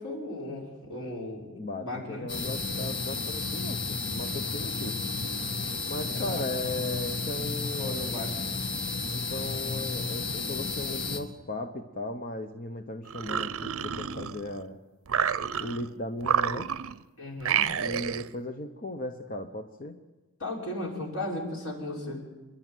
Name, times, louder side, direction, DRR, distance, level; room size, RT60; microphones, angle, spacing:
voice 1, 0.0-1.5 1.8-2.3 6.2-6.4 7.8-8.5 17.2-17.8 20.4-22.2, left 1 dB, 80° left, -2 dB, 6.3 m, -36 dB
voice 2, 1.5-5.0 5.9-8.2 9.1-14.8 15.6-16.7 17.8-20.0, left 1 dB, 40° left, 6 dB, 1.0 m, -37 dB
sound 1, 2.3-11.2, left 3 dB, 55° left, 2.3 m, -32 dB
sound 2, 13.1-14.6 15.1-15.9 16.2-17.0 17.4-18.3, right 8 dB, 80° right, 0.7 m, -29 dB
30.0 x 11.5 x 9.2 m, 1.2 s
head